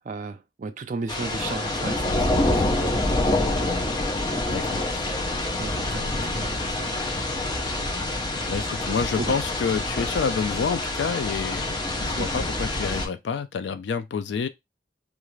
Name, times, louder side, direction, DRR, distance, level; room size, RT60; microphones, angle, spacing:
voice 1, 0.0-3.5 4.7-5.1 5.4-7.6 8.0-8.1 9.2-9.4 12.2-12.3, right 3 dB, 45° right, 0.4 m, -36 dB
sound 1, 1.1-13.1, left 2 dB, 25° left, 0.5 m, -26 dB
voice 2, 4.5-4.8 8.5-11.6 12.0-14.5, left 6 dB, 80° left, 0.3 m, -28 dB
2.5 x 2.4 x 3.0 m
head